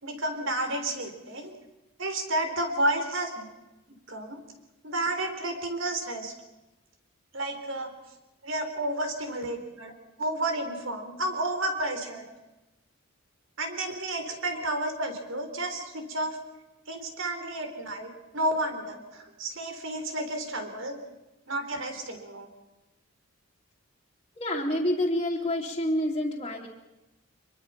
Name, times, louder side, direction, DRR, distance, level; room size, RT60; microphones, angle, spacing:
voice 1, 0.0-1.6 2.0-3.5 4.1-4.4 4.8-6.3 7.3-7.9 8.4-9.9 10.2-12.2 13.6-16.4 16.9-21.0 21.5-22.5, right 1 dB, 70° right, 6 dB, 4.0 m, -31 dB
voice 2, 24.3-26.7, left 1 dB, 25° left, -5 dB, 2.6 m, -28 dB
24.5 x 22.5 x 5.9 m, 1.0 s
head